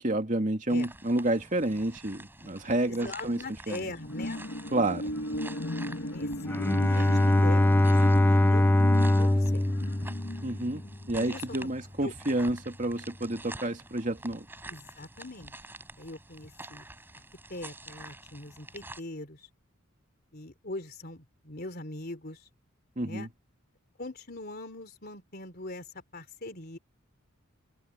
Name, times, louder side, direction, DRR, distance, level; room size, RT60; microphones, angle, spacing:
voice 1, 0.0-3.4 3.7-3.8 4.7-5.1 10.4-10.8 11.1-14.4 23.0-23.3, right 1 dB, 35° right, 2.6 m, -29 dB
sound 1, 0.7-19.0, right 2 dB, 10° right, 7.2 m, -48 dB
voice 2, 2.9-4.4 5.8-8.0 8.3-8.7 9.2-9.7 11.2-11.7 12.0-12.1 14.7-15.5 16.0-16.8 17.5-19.5 20.3-22.4 23.0-23.3 24.0-26.8, left 2 dB, 45° left, 3.3 m, -42 dB
sound 2, 3.9-11.7 12.1-12.2, left 1 dB, 65° left, 2.0 m, -36 dB
Bowed string instrument, 6.5-10.8, left 1 dB, 10° left, 0.4 m, -23 dB
head